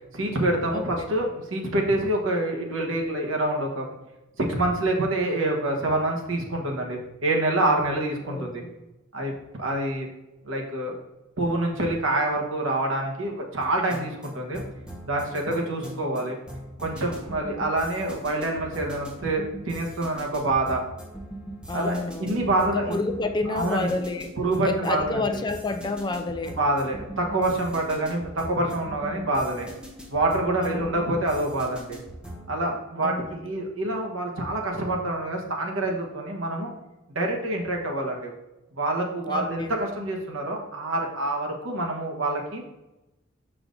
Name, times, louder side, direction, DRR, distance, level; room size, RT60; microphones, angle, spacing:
voice 1, 0.1-3.9 4.4-8.6 9.1-9.3 9.6-10.1 10.4-10.9 11.4-14.6 15.0-16.4 16.8-20.8 21.7-23.0 23.5-23.9 24.4-25.2 26.5-29.7 30.1-32.0 32.5-36.7 37.1-38.3 38.8-42.6, right 2 dB, 70° right, 0 dB, 1.3 m, -26 dB
voice 2, 0.7-1.1 8.3-8.8 21.7-24.3 24.6-26.6 30.6-30.9 33.0-33.2 39.3-39.7, left 2 dB, 20° left, 6 dB, 0.4 m, -30 dB
sound 1, 13.6-32.5, right 1 dB, 5° right, 1.1 m, -41 dB
6.8 x 5.7 x 2.6 m, 1.0 s
head